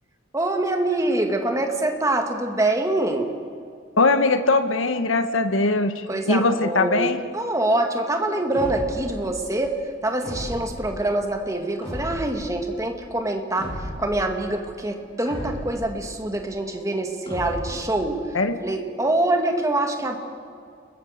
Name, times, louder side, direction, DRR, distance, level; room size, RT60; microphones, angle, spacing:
voice 1, 0.3-3.3 6.1-20.2, right 2 dB, 15° right, 4 dB, 2.1 m, -25 dB
voice 2, 4.0-7.2 18.3-18.8, left 3 dB, 80° left, 9 dB, 1.4 m, -21 dB
sound 1, 8.5-9.2 10.2-10.9 11.8-12.5 13.6-14.2 15.3-15.9 17.3-17.9, equal, 30° left, 7.4 m, -34 dB
29.5 x 21.5 x 6.7 m, 2.3 s
head